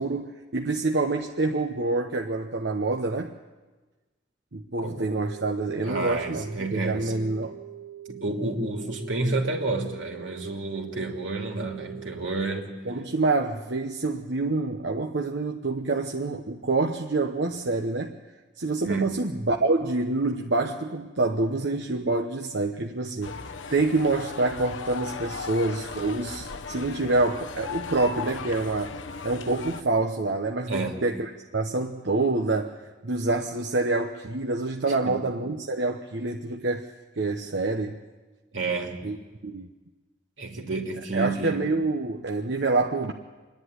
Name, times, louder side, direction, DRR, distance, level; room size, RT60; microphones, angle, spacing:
voice 1, 0.0-3.4 4.5-7.6 12.8-18.2 18.6-29.0 29.2-36.9 37.2-38.0 39.0-39.2 39.4-39.7 41.1-43.1, right 3 dB, 70° right, 3 dB, 0.9 m, -27 dB
voice 2, 4.8-5.1 5.8-7.3 8.1-12.7 18.8-19.3 30.7-31.0 35.1-35.2 38.5-39.0 40.4-41.6, right 3 dB, 90° right, 1 dB, 2.9 m, -30 dB
sound 1, 5.2-12.6, right 11 dB, 45° right, 2.0 m, -43 dB
sound 2, 23.2-29.8, left 5 dB, 90° left, 0.8 m, -37 dB
26.5 x 10.5 x 9.8 m, 1.3 s
head